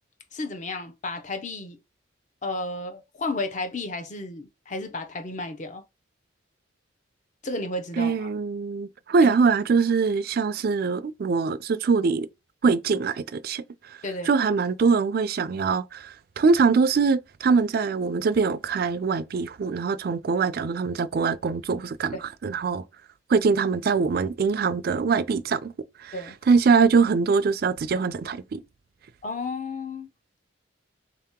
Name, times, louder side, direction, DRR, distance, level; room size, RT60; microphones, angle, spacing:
voice 1, 0.3-1.8 2.4-5.8 7.4-8.3 9.2-9.4 14.0-14.3 22.1-22.2 26.1-26.4 29.2-30.1, left 2 dB, 40° left, 0.6 m, -32 dB
voice 2, 8.0-12.3 12.6-14.0 14.3-22.2 22.4-22.8 23.3-25.7 26.0-26.1 26.5-28.6, right 5 dB, 50° right, 0.3 m, -23 dB
3.9 x 2.8 x 3.6 m
head